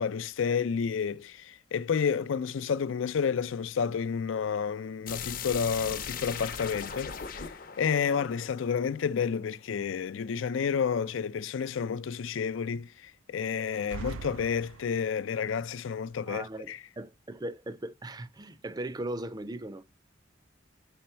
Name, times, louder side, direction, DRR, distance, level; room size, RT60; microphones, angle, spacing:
voice 1, 0.0-7.5 7.8-16.8, left 6 dB, 80° left, 0.4 m, -30 dB
sound 1, 5.1-9.8, left 7 dB, 45° left, 0.7 m, -39 dB
sound 2, 13.7-15.3, right 5 dB, 85° right, 0.3 m, -42 dB
voice 2, 16.3-19.8, right 1 dB, 20° right, 0.4 m, -38 dB
5.2 x 4.4 x 5.5 m
head